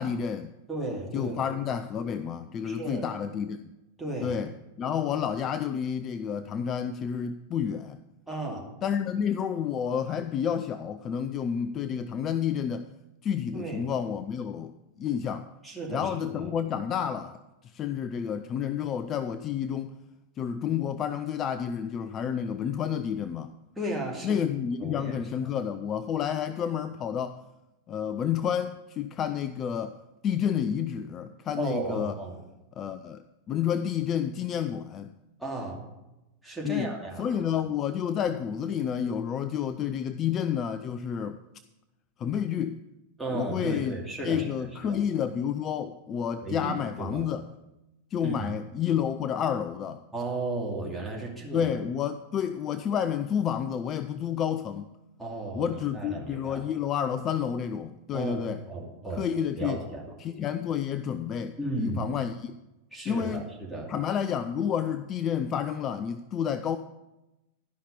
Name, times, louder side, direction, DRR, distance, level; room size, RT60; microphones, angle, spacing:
voice 1, 0.0-0.5 1.1-3.7 4.2-8.0 8.8-12.9 13.2-15.5 15.9-19.9 20.4-23.5 24.2-27.4 27.9-30.0 30.2-32.2 32.8-33.2 33.5-35.1 36.6-36.9 37.2-41.4 42.2-42.8 43.3-44.0 44.2-47.5 48.1-50.0 51.5-54.9 55.5-58.6 59.1-59.8 60.2-62.5 63.0-63.4 63.9-66.8, left 8 dB, 30° left, 11 dB, 0.4 m, -30 dB
voice 2, 0.7-1.4 2.6-3.1 4.0-4.4 8.3-8.7 13.5-13.8 15.6-16.5 23.8-24.4 24.8-25.2 31.6-32.4 35.4-35.8 36.4-37.3 43.2-45.0 46.4-47.3 48.2-48.5 50.1-51.7 55.2-56.7 58.1-59.3 59.6-60.1 61.6-62.0 62.9-63.9, right 2 dB, 5° right, -4 dB, 2.6 m, -34 dB
12.0 x 5.7 x 6.8 m, 0.98 s
figure-of-eight pair, 90°, 0 cm